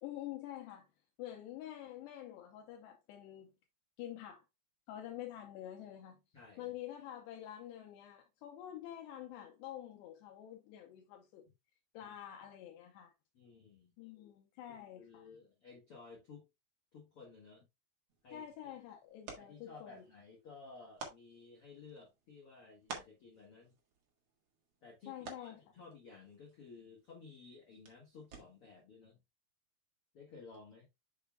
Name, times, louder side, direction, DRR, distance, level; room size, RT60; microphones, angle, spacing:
voice 1, 0.0-0.9 1.2-3.5 4.0-4.4 4.9-6.2 6.6-11.5 11.9-13.1 14.0-15.3 18.3-20.1 25.1-25.6, left 12 dB, 75° left, 2.6 m, -47 dB
voice 2, 6.3-6.7 12.0-12.1 13.3-13.9 14.7-16.5 16.9-17.7 18.2-18.8 19.3-23.7 24.8-29.2 30.1-30.9, left 4 dB, 60° left, 1.4 m, -55 dB
sound 1, 18.1-28.8, right 4 dB, 85° right, 1.3 m, -54 dB
7.2 x 6.8 x 2.3 m
omnidirectional pair, 5.6 m